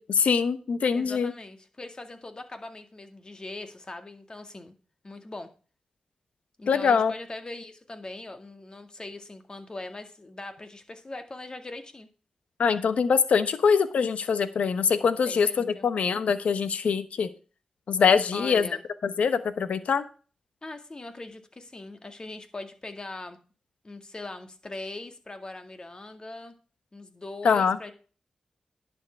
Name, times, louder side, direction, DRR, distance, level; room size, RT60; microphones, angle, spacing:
voice 1, 0.0-1.3 6.7-7.1 12.6-17.3 17.9-18.7 19.0-20.0 27.4-27.8, left 6 dB, 80° left, 12 dB, 1.0 m, -23 dB
voice 2, 0.9-4.7 5.0-5.5 6.6-12.1 15.3-15.9 18.3-18.9 20.6-23.4 23.8-26.5 26.9-27.9, left 2 dB, 35° left, 7 dB, 2.0 m, -41 dB
11.0 x 7.5 x 4.6 m, 0.37 s
cardioid pair, 55°, 2 cm